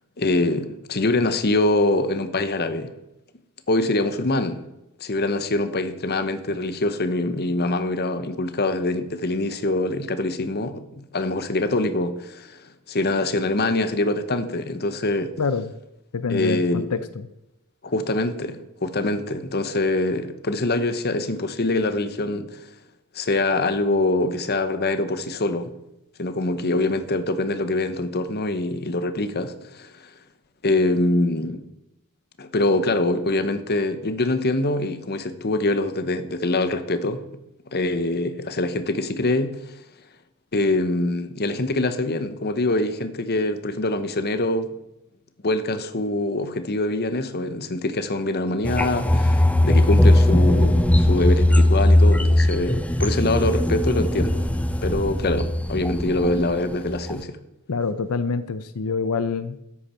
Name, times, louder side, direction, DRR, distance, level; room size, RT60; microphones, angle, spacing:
voice 1, 0.2-2.9 3.7-4.6 5.0-15.3 16.3-17.0 17.8-22.6 23.1-25.7 26.2-29.9 30.6-31.6 32.4-37.2 37.7-39.6 40.5-44.7 45.4-54.5 54.8-57.4, left 2 dB, 45° left, 1.1 m, -24 dB
voice 2, 16.1-17.0 57.7-59.6, left 4 dB, 80° left, 0.7 m, -25 dB
sound 1, 48.6-56.5 56.9-57.1, left 1 dB, 5° left, 0.7 m, -19 dB
13.5 x 10.5 x 4.5 m
head